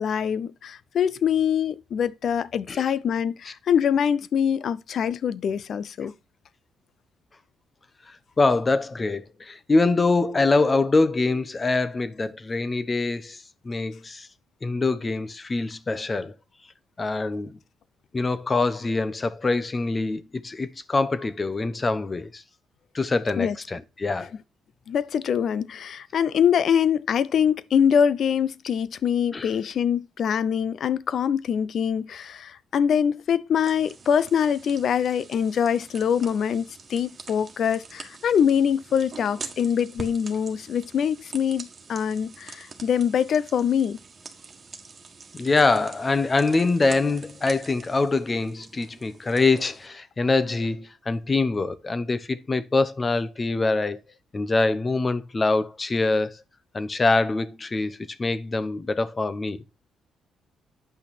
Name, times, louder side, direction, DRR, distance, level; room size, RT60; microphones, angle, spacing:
voice 1, 0.0-6.1 23.4-23.6 24.9-44.0, left 8 dB, 60° left, 0.5 m, -24 dB
voice 2, 8.1-14.3 14.6-16.3 17.0-17.6 18.1-22.4 22.9-24.3 29.3-29.5 45.3-54.0 54.3-56.4 56.7-59.6, left 3 dB, 30° left, 0.8 m, -24 dB
sound 1, 33.6-49.9, right 4 dB, 35° right, 1.6 m, -45 dB
8.8 x 5.7 x 4.2 m
cardioid pair, 90°, 0 cm